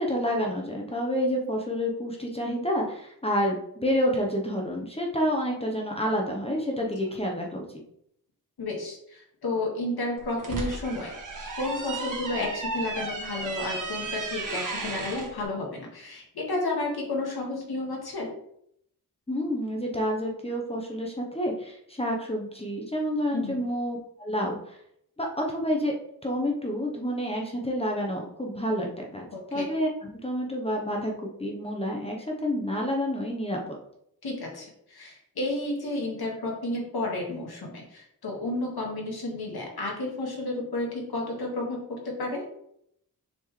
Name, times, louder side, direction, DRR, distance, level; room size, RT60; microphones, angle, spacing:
voice 1, 0.0-7.7 19.3-24.8 25.2-25.9 26.2-29.9 30.2-33.8, equal, 15° left, 0 dB, 0.9 m, -29 dB
voice 2, 8.6-11.1 11.6-18.3 23.3-23.6 29.3-29.7 34.2-41.8 42.0-42.4, left 2 dB, 80° left, -1 dB, 1.9 m, -32 dB
sound 1, 10.2-15.3, right 3 dB, 55° right, 1.5 m, -34 dB
7.1 x 4.5 x 3.2 m, 0.73 s
wide cardioid pair, 165°, 38 cm